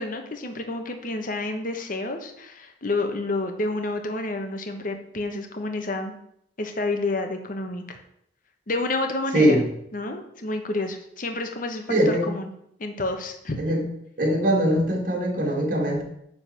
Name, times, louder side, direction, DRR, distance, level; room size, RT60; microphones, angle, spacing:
voice 1, 0.0-6.2 6.6-8.0 8.7-9.6 9.9-12.5 12.8-13.6, left 2 dB, 50° left, 5 dB, 1.1 m, -29 dB
voice 2, 11.9-12.2 13.6-13.8 14.2-16.0, equal, 50° right, 1 dB, 2.1 m, -21 dB
9.7 x 4.0 x 6.8 m, 0.72 s
head